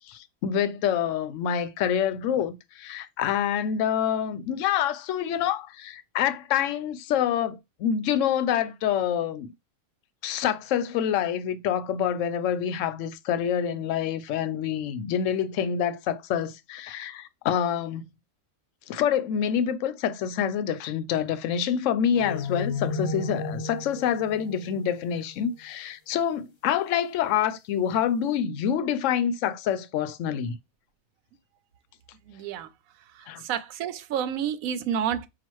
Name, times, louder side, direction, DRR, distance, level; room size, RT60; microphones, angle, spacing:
voice 1, 0.1-9.5 10.2-18.1 18.9-30.5 33.3-33.4, left 9 dB, 70° left, 0.9 m, -27 dB
sound 1, 22.1-25.6, left 4 dB, 50° left, 0.3 m, -33 dB
voice 2, 32.3-32.7 33.1-35.3, right 8 dB, 85° right, 1.0 m, -30 dB
5.7 x 2.4 x 3.0 m
omnidirectional pair, 1.4 m